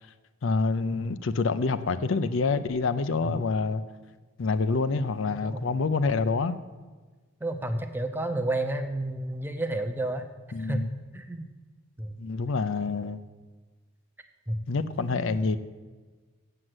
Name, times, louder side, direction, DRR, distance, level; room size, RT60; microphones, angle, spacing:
voice 1, 0.4-3.8 4.4-6.6 10.5-10.9 12.2-13.2 14.7-15.6, left 4 dB, 65° left, 12 dB, 0.5 m, -27 dB
voice 2, 5.4-5.7 7.4-10.3 10.6-10.9 11.1-11.5 12.0-12.2 14.5-14.6 15.0-15.4, right 1 dB, 10° right, 7 dB, 0.6 m, -31 dB
7.7 x 7.6 x 7.9 m, 1.4 s
head